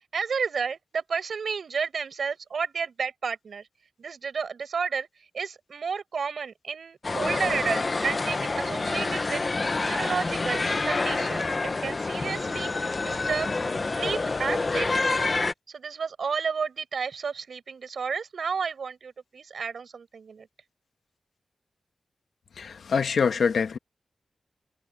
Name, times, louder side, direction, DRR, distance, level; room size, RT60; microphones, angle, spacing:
voice 1, 0.1-3.6 4.0-5.1 5.3-9.4 9.8-11.5 11.8-13.5 13.9-15.2 15.7-20.5, right 5 dB, 75° right, 5.5 m, -31 dB
sound 1, 7.0-15.5, left 3 dB, 40° left, 1.1 m, -27 dB
voice 2, 22.6-23.8, left 6 dB, 80° left, 1.7 m, -25 dB
wide cardioid pair, 85°, 0 cm